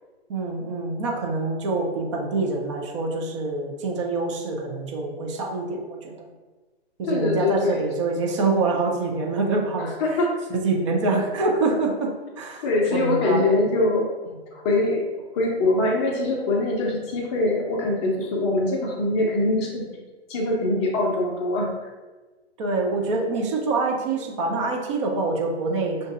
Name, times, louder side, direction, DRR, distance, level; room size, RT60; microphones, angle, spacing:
voice 1, 0.3-6.3 7.0-10.2 10.5-13.5 22.6-26.1, right 3 dB, 30° right, 0 dB, 0.5 m, -25 dB
voice 2, 7.0-7.8 9.8-10.3 12.6-14.1 14.5-15.0 15.3-20.0 20.3-21.9, left 2 dB, 25° left, -1 dB, 0.5 m, -23 dB
5.6 x 2.5 x 2.4 m, 1.2 s
figure-of-eight pair, 125°, 33 cm